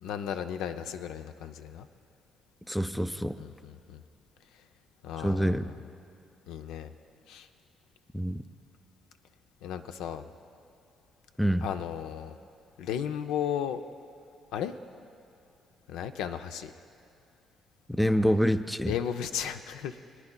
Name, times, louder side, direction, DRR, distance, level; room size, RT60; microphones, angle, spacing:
voice 1, 0.0-1.9 3.4-4.0 5.0-5.8 6.5-6.9 7.3-7.5 9.6-10.3 11.6-12.4 12.8-13.8 14.5-14.7 15.9-16.7 18.8-20.2, left 9 dB, 85° left, 8 dB, 0.4 m, -35 dB
voice 2, 2.7-3.3 5.2-5.6 8.1-8.4 11.4-11.7 18.0-18.9, equal, ahead, 11 dB, 0.4 m, -26 dB
24.0 x 9.8 x 2.2 m, 2.7 s
supercardioid pair, 75°, 0 cm